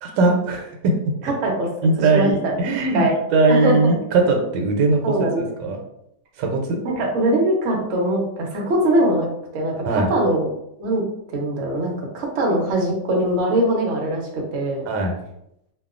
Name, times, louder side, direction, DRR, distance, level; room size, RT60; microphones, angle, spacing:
voice 1, 0.0-0.9 1.8-3.0 3.3-5.8 6.4-6.8 9.9-10.1 14.9-15.1, right 3 dB, 80° right, 2 dB, 1.3 m, -20 dB
voice 2, 1.2-1.7 2.1-2.5 2.9-3.2 3.5-4.0 5.0-5.4 6.8-9.3 9.5-10.5 10.8-11.0 11.3-14.8, right 1 dB, 65° right, -1 dB, 0.8 m, -22 dB
2.8 x 2.3 x 2.4 m, 0.79 s
omnidirectional pair, 2.0 m